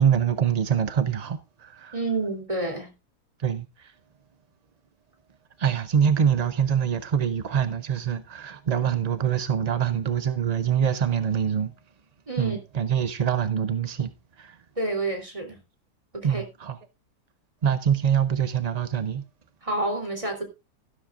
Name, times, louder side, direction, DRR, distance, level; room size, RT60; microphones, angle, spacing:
voice 1, 0.0-2.0 3.4-3.7 5.6-11.7 12.4-14.1 14.4-14.5 16.2-16.8 17.6-19.2, right 8 dB, 50° right, 0.5 m, -24 dB
voice 2, 1.9-2.9 12.3-12.6 14.8-15.6 16.1-16.4 19.6-20.4, right 2 dB, 20° right, 3.4 m, -29 dB
13.0 x 12.5 x 2.5 m
omnidirectional pair, 1.6 m